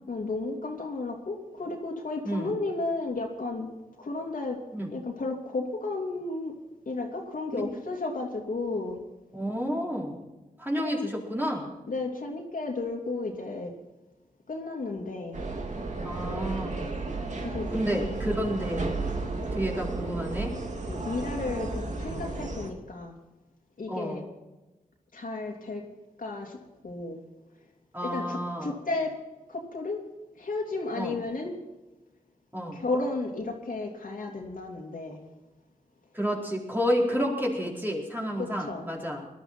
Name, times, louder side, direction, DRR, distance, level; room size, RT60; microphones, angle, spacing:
voice 1, 0.1-3.7 4.0-4.6 4.9-6.5 6.9-9.0 10.8-11.1 11.9-13.7 14.5-15.4 17.4-17.7 20.9-23.2 23.8-24.2 25.1-25.8 26.2-26.6 26.8-27.2 28.0-29.2 29.5-30.0 30.4-31.5 32.7-35.2 38.4-38.9, left 3 dB, 70° left, 0 dB, 2.9 m, -33 dB
voice 2, 9.3-10.2 10.6-11.7 16.0-16.9 17.7-19.0 19.5-20.6 23.9-24.3 27.9-28.8 30.9-31.2 32.5-32.8 36.1-39.2, equal, 15° right, -2 dB, 4.3 m, -30 dB
sound 1, 15.3-22.7, right 3 dB, 55° right, 2.3 m, -33 dB
20.5 x 12.5 x 4.4 m, 1.1 s
wide cardioid pair, 70°, 15 cm